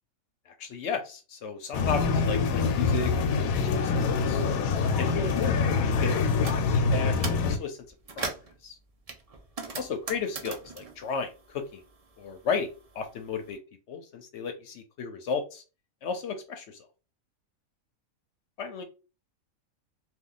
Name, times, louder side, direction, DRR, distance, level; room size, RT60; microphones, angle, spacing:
voice 1, 0.5-3.1 3.4-4.4 5.0-6.5 6.7-7.8 8.2-8.3 8.6-8.8 9.7-11.8 12.2-12.7 12.9-13.6 13.9-15.6 16.0-16.9 18.6-18.8, left 5 dB, 65° left, 6 dB, 0.8 m, -34 dB
sound 1, 1.7-7.6, left 4 dB, 85° left, 1.0 m, -25 dB
sound 2, 6.1-6.6 7.0-7.5 7.9-8.5 9.1-12.0 12.3-13.4, right 4 dB, 50° right, 0.4 m, -39 dB
2.9 x 2.3 x 3.8 m, 0.32 s
omnidirectional pair, 1.4 m